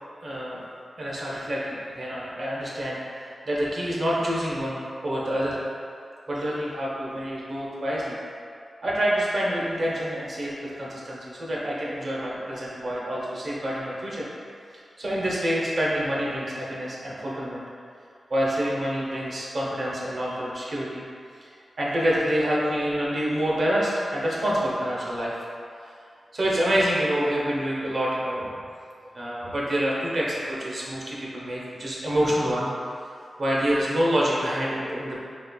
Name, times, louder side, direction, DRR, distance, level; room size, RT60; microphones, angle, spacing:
voice 1, 0.2-0.6 1.0-5.6 6.3-8.2 8.8-14.3 14.7-17.6 18.3-21.0 21.4-21.5 21.8-25.3 26.3-28.5 29.1-32.7 33.4-35.3, equal, 50° right, -5 dB, 0.7 m, -27 dB
4.1 x 3.3 x 2.2 m, 2.4 s
wide cardioid pair, 145°, 0 cm